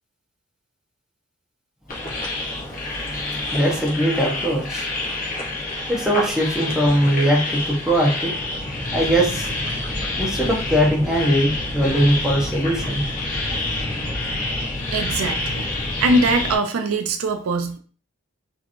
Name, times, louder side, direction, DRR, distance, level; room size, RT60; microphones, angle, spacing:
sound 1, 1.9-16.6, left 2 dB, 40° left, 0.7 m, -27 dB
voice 1, 3.5-4.9 5.9-8.3 8.9-9.5 10.2-13.0, equal, 5° right, -3 dB, 0.6 m, -20 dB
voice 2, 14.9-15.7 16.0-17.8, right 2 dB, 85° right, 7 dB, 0.4 m, -21 dB
2.8 x 2.6 x 2.5 m, 0.41 s
head